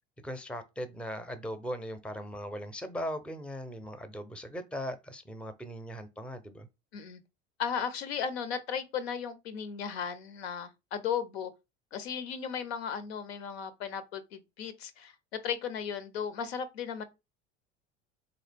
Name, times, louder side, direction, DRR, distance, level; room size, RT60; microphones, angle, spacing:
voice 1, 0.2-6.7, equal, 5° left, 0.6 m, -39 dB
voice 2, 7.6-11.5 11.9-17.0, left 7 dB, 70° left, 0.7 m, -35 dB
3.7 x 2.9 x 3.4 m
figure-of-eight pair, 70°, 33 cm